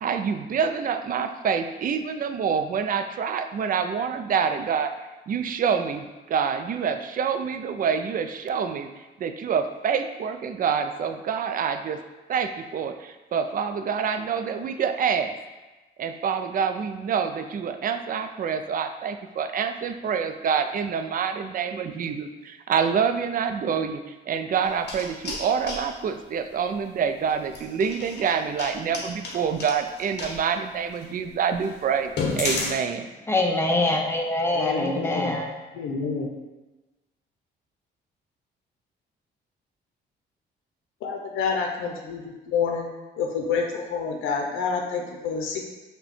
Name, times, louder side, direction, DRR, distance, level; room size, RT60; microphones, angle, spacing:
voice 1, 0.0-4.9 5.3-8.9 9.2-12.0 12.3-15.3 16.0-33.1, right 6 dB, 45° right, 7 dB, 0.4 m, -27 dB
sound 1, 24.6-25.9 27.4-30.4 30.9-31.0 31.5-31.6 32.0-32.7, left 3 dB, 55° left, 1.0 m, -31 dB
voice 2, 33.3-35.4, left 2 dB, 10° left, 1 dB, 0.7 m, -24 dB
voice 3, 34.5-35.3 35.8-36.3 41.0-42.9 43.2-45.6, left 5 dB, 90° left, 1 dB, 0.6 m, -28 dB
5.5 x 2.2 x 4.2 m, 1.2 s
cardioid pair, 90°, 20 cm